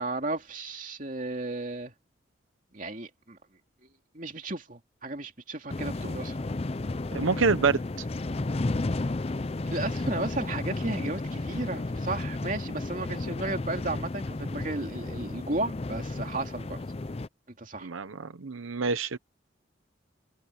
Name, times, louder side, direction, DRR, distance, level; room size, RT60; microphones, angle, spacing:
voice 1, 0.0-1.9 2.7-3.4 4.1-6.4 9.7-16.8 17.6-17.9, right 2 dB, 40° right, 2.8 m, -34 dB
sound 1, 5.7-17.3, left 2 dB, 30° left, 0.5 m, -33 dB
voice 2, 7.1-8.0 17.8-19.2, right 4 dB, 85° right, 0.8 m, -27 dB
head